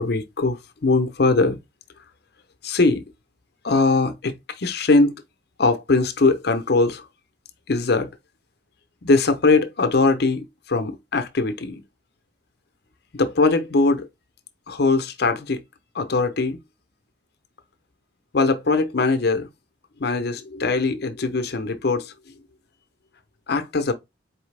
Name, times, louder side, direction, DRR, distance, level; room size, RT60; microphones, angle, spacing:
voice 1, 0.0-1.6 2.6-3.0 3.6-5.2 5.6-7.0 7.7-8.1 9.0-11.8 13.1-14.1 14.7-15.6 15.9-16.6 18.3-19.5 20.0-22.1 23.5-23.9, left 3 dB, 60° left, 0.7 m, -21 dB
4.4 x 3.1 x 3.3 m
head